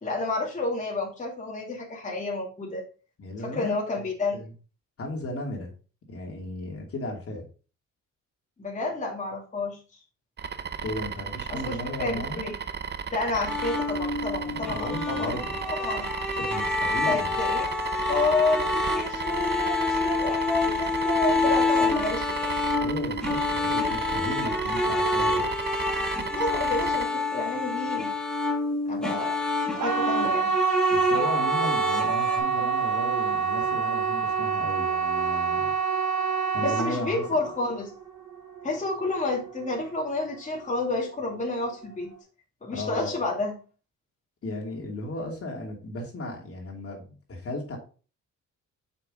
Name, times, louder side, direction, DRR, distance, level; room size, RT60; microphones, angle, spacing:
voice 1, 0.0-2.9 3.4-4.4 8.6-9.8 11.5-12.5 13.1-15.3 15.6-16.1 17.1-17.7 18.1-22.5 26.3-28.1 28.9-29.3 29.7-30.5 36.6-37.9 38.6-42.1 42.6-43.5, left 3 dB, 25° left, -2 dB, 2.4 m, -30 dB
voice 2, 3.2-4.1 4.3-4.5 5.0-5.7 6.1-7.4 10.8-12.5 14.4-15.5 16.4-17.3 22.8-25.5 30.9-35.7 36.5-37.2 42.7-43.2 44.4-47.8, left 1 dB, 50° left, 0 dB, 2.7 m, -35 dB
sound 1, 10.4-27.1, right 7 dB, 35° right, 0.6 m, -35 dB
sound 2, 13.4-32.4, left 2 dB, ahead, 1.8 m, -27 dB
sound 3, 29.7-40.6 40.9-41.4 41.8-41.9, right 5 dB, 70° right, 2.3 m, -27 dB
6.6 x 6.0 x 3.8 m, 0.36 s
cardioid pair, 90°, 30 cm